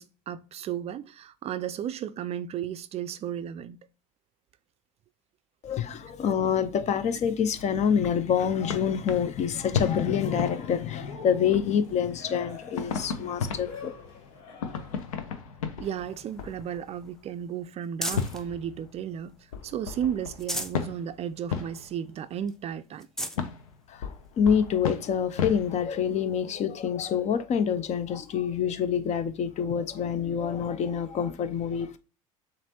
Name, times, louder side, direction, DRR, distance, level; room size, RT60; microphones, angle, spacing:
voice 1, 0.0-3.8 15.8-23.1, right 9 dB, 35° right, 0.4 m, -34 dB
voice 2, 5.6-13.9 23.9-24.1 24.4-32.0, left 7 dB, 40° left, 0.6 m, -27 dB
sound 1, 7.6-11.2 11.5-12.3 12.8-17.2 18.1-22.2 23.3-26.5, left 6 dB, 80° left, 0.7 m, -35 dB
Cheering, 10.2-15.1, left 4 dB, 65° left, 1.9 m, -45 dB
Drop Paper on Crumpled Tissues, 15.8-18.5 19.0-19.8 20.2-20.9 21.3-21.4 21.8-21.9 22.5-22.6 22.9-23.4 24.2-24.3 26.1-26.2, equal, 5° left, 0.6 m, -38 dB
7.1 x 2.6 x 2.9 m
hypercardioid pair, 75°, 17 cm